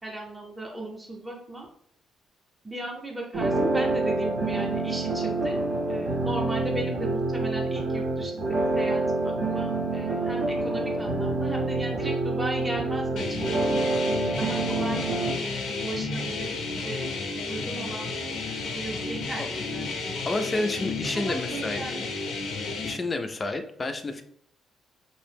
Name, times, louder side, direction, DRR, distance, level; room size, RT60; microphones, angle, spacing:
voice 1, 0.0-1.7 2.6-5.6 5.9-8.4 8.7-13.9 14.4-17.1 17.5-18.2 18.7-20.6 21.0-22.0, right 2 dB, 10° right, -1 dB, 0.6 m, -36 dB
sound 1, 3.3-15.3, right 2 dB, 60° right, 0.6 m, -27 dB
sound 2, 13.2-22.9, left 4 dB, 80° left, 0.6 m, -32 dB
voice 2, 20.2-21.8 22.8-24.2, left 2 dB, 30° left, 6 dB, 0.4 m, -29 dB
2.5 x 2.0 x 3.3 m, 0.68 s
cardioid pair, 90°, 0 cm